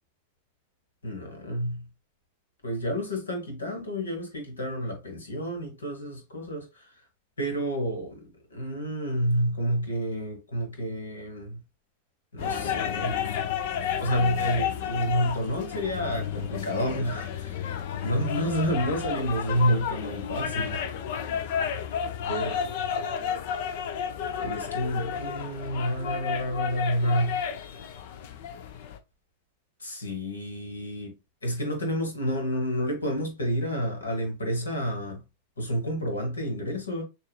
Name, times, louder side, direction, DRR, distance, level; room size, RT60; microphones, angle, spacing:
voice 1, 1.0-1.8 2.6-6.9 7.4-8.2 8.5-11.6 12.3-13.2 14.0-20.8 22.3-23.0 24.4-27.4 29.8-31.1 31.4-35.2 35.6-37.0, equal, 70° left, 1.7 m, -29 dB
sound 1, 12.4-29.0, left 8 dB, 50° left, 0.6 m, -31 dB
6.4 x 2.6 x 2.3 m
figure-of-eight pair, 90°, 0 cm